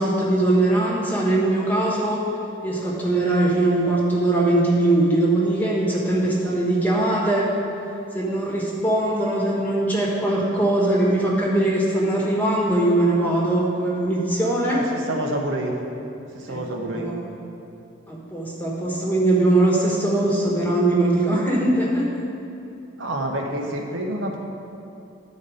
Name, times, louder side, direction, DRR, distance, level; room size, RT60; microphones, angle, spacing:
voice 1, 0.0-2.2 2.6-7.5 8.1-14.8 16.5-17.2 18.1-22.1, right 1 dB, 10° left, -4 dB, 1.2 m, -21 dB
voice 2, 15.1-15.7 16.3-17.1 23.0-24.4, right 1 dB, 75° right, 0 dB, 1.0 m, -27 dB
12.5 x 4.2 x 5.0 m, 2.7 s
head